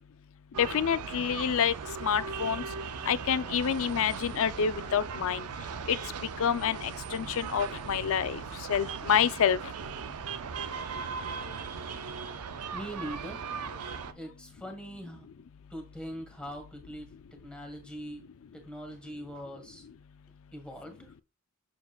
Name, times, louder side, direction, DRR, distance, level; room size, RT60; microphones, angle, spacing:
sound 1, 0.5-14.1, right 5 dB, 90° right, 0.6 m, -38 dB
voice 1, 0.6-1.7 2.0-2.6 3.1-5.4 5.9-6.0 6.4-8.4 8.7-9.6, left 8 dB, 65° left, 0.4 m, -27 dB
voice 2, 12.7-13.4 14.1-15.3 15.7-17.1 17.4-18.2 18.5-19.8 20.5-21.1, equal, 5° left, 1.5 m, -42 dB
7.2 x 6.3 x 2.3 m
head